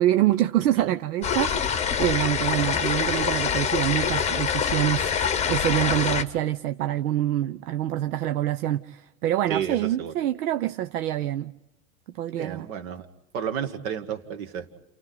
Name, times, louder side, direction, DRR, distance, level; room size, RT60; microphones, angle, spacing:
voice 1, 0.0-11.5 12.2-12.7, right 13 dB, 80° right, 0.7 m, -26 dB
sound 1, 1.2-6.2, left 7 dB, 15° left, 0.9 m, -25 dB
voice 2, 9.5-10.1 12.3-13.1 13.3-14.7, right 8 dB, 65° right, 2.0 m, -31 dB
30.0 x 28.5 x 4.0 m
supercardioid pair, 130°, 44 cm